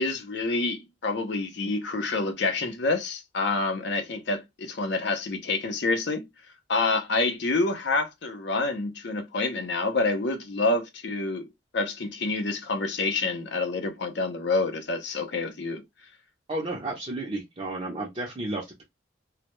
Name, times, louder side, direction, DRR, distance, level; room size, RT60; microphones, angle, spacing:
voice 1, 0.0-6.3 6.7-15.8, left 3 dB, 60° left, 0.5 m, -27 dB
voice 2, 16.5-18.8, right 2 dB, 30° right, 0.5 m, -32 dB
2.1 x 2.0 x 2.9 m
head